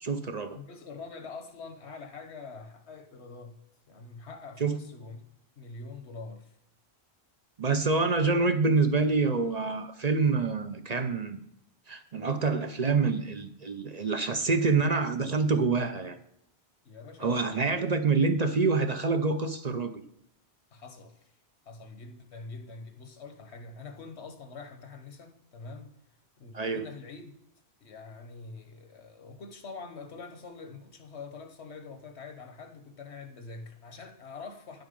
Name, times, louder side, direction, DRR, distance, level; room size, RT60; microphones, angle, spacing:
voice 1, 0.0-0.6 4.6-4.8 7.6-11.4 11.9-16.2 17.2-20.0 26.5-26.8, right 4 dB, 45° right, 0.7 m, -26 dB
voice 2, 0.5-3.6 3.9-5.2 5.6-6.5 16.8-17.8 20.7-21.3 21.6-25.9 26.4-27.3 27.8-34.8, left 4 dB, 85° left, 1.4 m, -45 dB
10.0 x 7.9 x 5.3 m
omnidirectional pair, 1.1 m